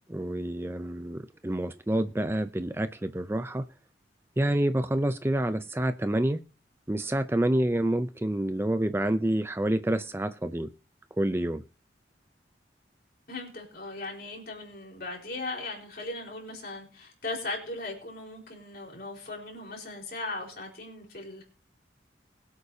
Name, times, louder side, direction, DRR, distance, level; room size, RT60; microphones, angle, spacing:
voice 1, 0.1-3.7 4.4-6.4 6.9-10.7 11.2-11.6, right 1 dB, 15° right, 0.4 m, -28 dB
voice 2, 13.3-21.4, left 2 dB, 55° left, 4.4 m, -38 dB
22.0 x 8.3 x 2.8 m
head